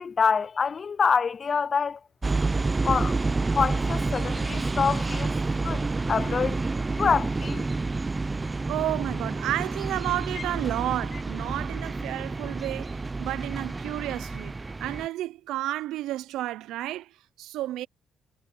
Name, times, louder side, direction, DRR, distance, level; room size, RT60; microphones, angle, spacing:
voice 1, 0.0-2.0 2.8-3.2 3.5-5.3 5.6-6.6 7.0-7.7, left 6 dB, 40° left, 0.3 m, -26 dB
sound 1, 2.2-15.1, right 3 dB, 25° right, 0.5 m, -29 dB
voice 2, 8.6-17.9, right 14 dB, 90° right, 0.4 m, -32 dB
cardioid pair, 90°, 0 cm